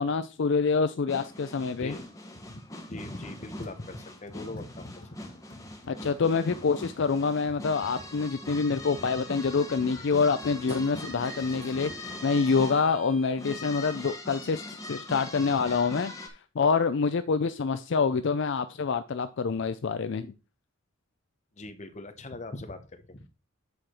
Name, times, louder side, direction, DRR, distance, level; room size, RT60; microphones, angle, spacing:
voice 1, 0.0-2.0 5.9-16.1 16.6-20.3, left 5 dB, 55° left, 0.4 m, -26 dB
sound 1, 1.1-16.3, left 1 dB, 15° left, 1.2 m, -42 dB
voice 2, 2.3-5.6 21.5-23.3, left 2 dB, 30° left, 0.9 m, -41 dB
sound 2, 3.6-12.5, equal, 75° left, 1.8 m, -53 dB
sound 3, 7.1-7.3 8.3-8.5 8.9-14.0, right 1 dB, 30° right, 1.0 m, -46 dB
8.1 x 5.0 x 4.3 m
head